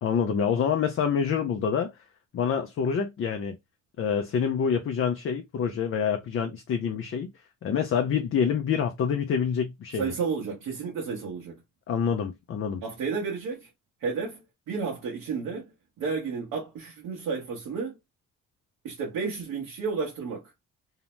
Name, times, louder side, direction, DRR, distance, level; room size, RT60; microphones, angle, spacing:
voice 1, 0.0-1.9 2.3-3.6 4.0-7.3 7.6-10.0 11.9-12.8, left 7 dB, 45° left, 0.5 m, -26 dB
voice 2, 10.0-11.6 12.8-13.7 14.0-15.7 16.0-17.9 18.8-20.5, right 5 dB, 80° right, 1.0 m, -32 dB
2.8 x 2.0 x 3.0 m
cardioid pair, 90°, 30 cm